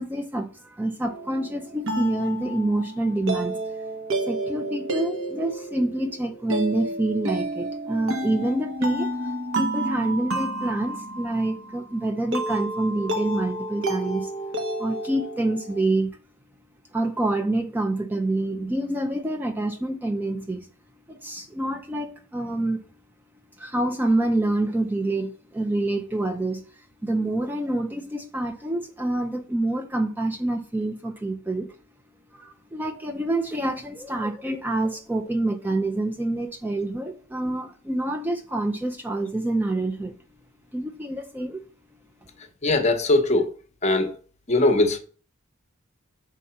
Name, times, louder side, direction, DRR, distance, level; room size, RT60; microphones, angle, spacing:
voice 1, 0.0-3.6 4.3-14.3 14.8-16.2 16.9-20.7 21.1-22.8 23.6-31.7 32.3-40.1 40.7-41.6, right 2 dB, 10° right, 0.4 m, -27 dB
sound 1, 1.0-15.8, right 1 dB, 65° right, 1.0 m, -30 dB
voice 2, 42.6-43.5 43.8-44.1 44.5-45.0, left 2 dB, 30° left, 0.8 m, -20 dB
5.3 x 3.7 x 5.6 m
head